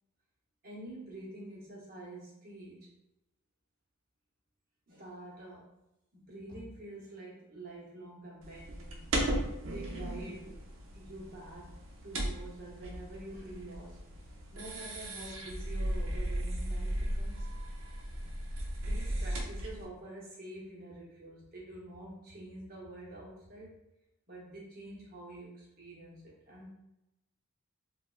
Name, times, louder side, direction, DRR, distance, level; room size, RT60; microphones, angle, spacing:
voice 1, 0.6-2.9 4.9-5.7 6.1-9.1 9.4-10.5 10.9-14.0 14.5-17.5 18.8-23.8 24.3-26.7, right 1 dB, 40° right, -5 dB, 0.8 m, -47 dB
sound 1, 8.4-19.8, right 1 dB, 60° right, 0.5 m, -36 dB
3.3 x 2.1 x 2.3 m, 0.89 s
head